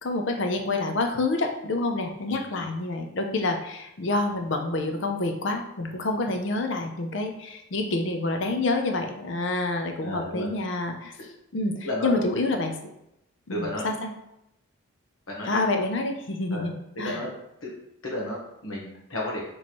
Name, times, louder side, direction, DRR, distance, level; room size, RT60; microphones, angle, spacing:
voice 1, 0.0-11.1 11.5-12.7 13.5-14.1 15.5-16.7 17.0-17.2, left 2 dB, 60° left, 4 dB, 0.5 m, -27 dB
voice 2, 2.3-2.7 10.0-10.5 11.8-12.2 13.5-13.9 15.3-15.6 16.5-16.6 17.0-17.7 18.0-19.4, left 1 dB, 75° left, -4 dB, 1.0 m, -33 dB
3.1 x 3.0 x 4.1 m, 0.84 s
head